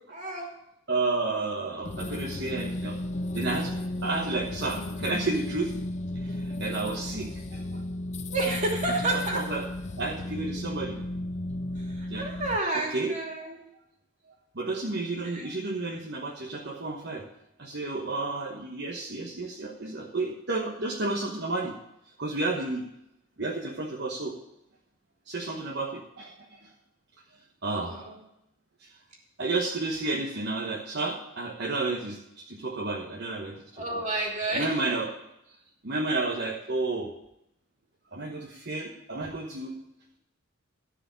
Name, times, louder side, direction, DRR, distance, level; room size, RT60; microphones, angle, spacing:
voice 1, 0.1-0.5 8.3-9.4 11.7-13.6 15.3-15.5 27.8-28.2 33.7-34.7, right 2 dB, 35° right, -1 dB, 2.8 m, -30 dB
voice 2, 0.9-3.0 3.3-3.8 4.0-5.7 6.1-7.8 9.3-9.6 10.0-11.0 12.1-12.3 12.9-13.2 14.5-17.2 17.6-21.7 22.2-22.8 23.4-24.3 25.3-26.7 27.6-28.0 28.8-28.9 29.4-34.0 34.5-35.1 35.8-37.1 38.1-39.8, right 3 dB, 50° right, -1 dB, 1.2 m, -31 dB
sound 1, 1.8-12.6, left 1 dB, 35° left, 0.4 m, -34 dB
14.0 x 5.0 x 9.0 m, 0.84 s
head